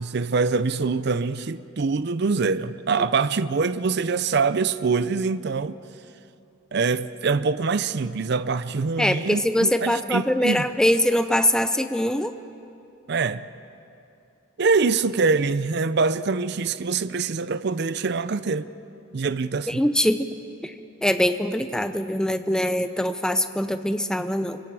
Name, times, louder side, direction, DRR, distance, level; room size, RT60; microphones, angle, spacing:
voice 1, 0.0-5.8 6.7-10.6 13.1-13.5 14.6-18.7 19.1-19.9, right 4 dB, 50° right, 0.5 m, -24 dB
voice 2, 9.0-12.3 19.7-20.3 20.6-20.7 21.0-24.6, left 1 dB, 5° left, 0.5 m, -23 dB
25.0 x 24.0 x 4.8 m
head